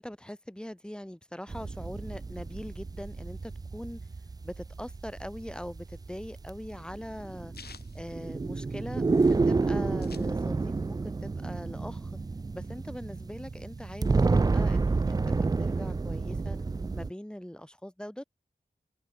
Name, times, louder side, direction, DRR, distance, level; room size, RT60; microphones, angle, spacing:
voice 1, 0.0-4.0 4.4-7.5 7.9-12.1 12.5-16.6 16.9-18.2, equal, 5° left, 1.6 m, -42 dB
sound 1, 1.5-17.1, right 3 dB, 25° right, 0.3 m, -30 dB
sound 2, 5.9-9.0 9.3-9.4 9.6-10.9 11.2-12.3, left 6 dB, 70° left, 0.8 m, -52 dB
wide cardioid pair, 80°, 17 cm